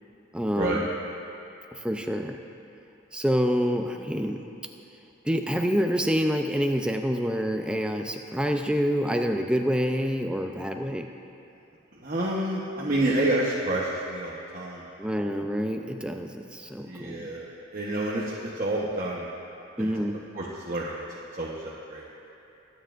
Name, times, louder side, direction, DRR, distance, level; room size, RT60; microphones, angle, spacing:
voice 1, 0.3-0.9 1.7-2.4 3.1-4.5 5.2-11.1 15.0-17.3 19.8-20.2, equal, 5° right, 4 dB, 0.4 m, -27 dB
voice 2, 11.9-14.9 16.8-19.3 19.8-19.9 20.3-22.0, right 1 dB, 40° right, -6 dB, 1.0 m, -29 dB
22.0 x 9.1 x 2.5 m, 2.8 s
head